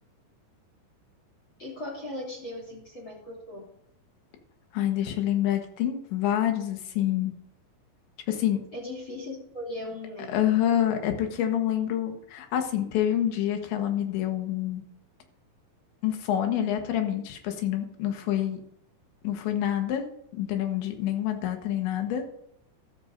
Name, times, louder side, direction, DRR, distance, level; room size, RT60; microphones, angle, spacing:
voice 1, 1.6-3.6 8.7-10.4, left 1 dB, 30° left, -2 dB, 3.0 m, -38 dB
voice 2, 4.7-7.3 8.3-8.6 10.3-14.8 16.0-18.6 19.2-20.0 20.4-22.2, left 11 dB, 75° left, 5 dB, 3.5 m, -27 dB
15.0 x 13.0 x 2.7 m, 0.73 s
omnidirectional pair, 5.5 m